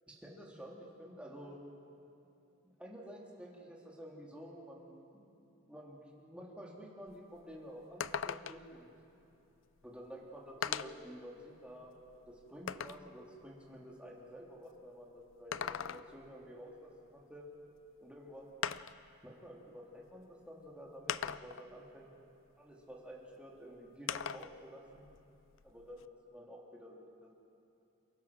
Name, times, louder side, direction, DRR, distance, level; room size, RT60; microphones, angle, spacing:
voice 1, 0.1-1.6 2.8-5.3 5.7-8.9 9.8-11.9 12.3-17.4 18.0-18.5 19.2-22.1 22.6-25.1 25.6-26.0 26.3-27.3, equal, 5° right, -3 dB, 2.9 m, -51 dB
sound 1, 7.1-7.2 7.5-7.6 8.0-8.8 9.8-9.9 10.6-11.1 11.7-13.1 15.3-16.3 17.8-17.9 18.6-19.1 20.1-20.2 21.1-21.7 24.1-24.6 24.9-26.0, left 8 dB, 70° left, 0.5 m, -39 dB
28.5 x 15.5 x 6.1 m, 2.8 s
head